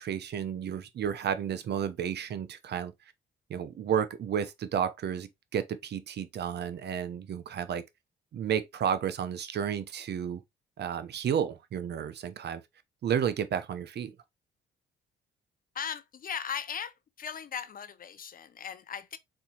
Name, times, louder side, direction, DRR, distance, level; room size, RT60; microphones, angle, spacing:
voice 1, 0.0-2.9 3.5-7.8 8.3-10.4 10.8-12.6 13.0-14.1, right 8 dB, 55° right, 0.8 m, -32 dB
voice 2, 15.7-19.2, left 7 dB, 45° left, 0.7 m, -38 dB
4.4 x 4.2 x 2.8 m
cardioid pair, 90°, 20 cm